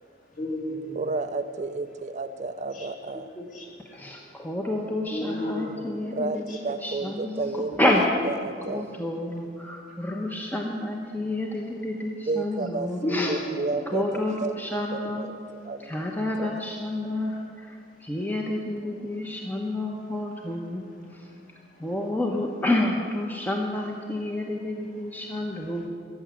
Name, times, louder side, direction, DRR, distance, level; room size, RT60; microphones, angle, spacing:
voice 1, 0.3-1.3 2.7-4.2 5.1-6.2 6.5-6.6 9.8-9.9 13.0-14.0 17.3-17.6 17.9-18.1 18.8-19.6 19.9-20.0 20.3-20.4 20.9-21.9 23.4-23.5 25.3-25.9, left 1 dB, 45° left, -2 dB, 3.0 m, -36 dB
voice 2, 1.0-3.3 6.1-7.9 8.2-9.0 12.3-14.6 14.9-16.6, right 3 dB, 40° right, 9 dB, 0.5 m, -32 dB
voice 3, 3.9-8.1 8.7-13.3 13.9-15.3 15.8-20.8 21.1-21.3 21.8-25.8, left 1 dB, 10° left, 0 dB, 1.0 m, -29 dB
14.5 x 7.2 x 10.0 m, 2.2 s
head